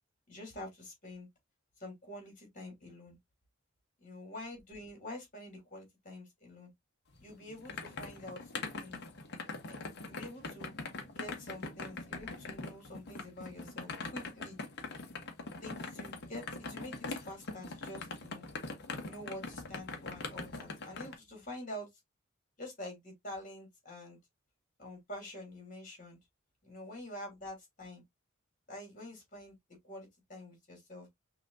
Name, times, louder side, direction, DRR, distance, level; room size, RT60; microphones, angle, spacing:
voice 1, 0.3-1.3 1.8-3.2 4.0-6.7 7.2-9.0 9.6-9.8 10.0-10.7 11.1-14.6 15.6-18.4 19.0-21.9 22.6-24.2 24.8-26.2 26.6-28.0 28.7-29.5 29.8-31.1, left 1 dB, 40° left, 3.2 m, -47 dB
sound 1, 7.1-21.1, left 3 dB, 55° left, 1.1 m, -42 dB
5.8 x 3.0 x 2.6 m
head